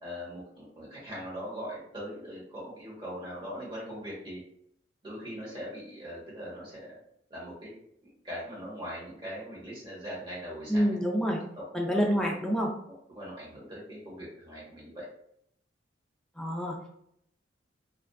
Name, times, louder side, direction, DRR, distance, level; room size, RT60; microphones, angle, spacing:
voice 1, 0.0-4.4 5.0-7.0 7.3-7.7 8.2-11.2 11.6-12.2 12.9-15.0, equal, 25° right, -6 dB, 1.1 m, -41 dB
voice 2, 10.7-11.4 11.7-12.7 16.4-16.8, equal, 5° left, -1 dB, 0.3 m, -27 dB
2.4 x 2.3 x 2.3 m, 0.71 s
head